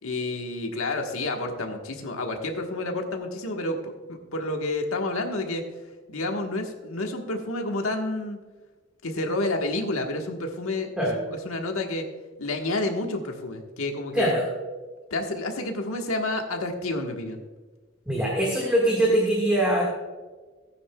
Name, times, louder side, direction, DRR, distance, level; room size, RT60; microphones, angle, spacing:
voice 1, 0.0-5.6 6.1-8.4 9.0-12.0 12.4-14.3 15.1-17.4, left 2 dB, 85° left, 3 dB, 1.4 m, -29 dB
voice 2, 14.1-14.5 18.1-19.8, right 1 dB, 5° right, -4 dB, 1.7 m, -22 dB
16.0 x 9.5 x 2.3 m, 1.3 s
head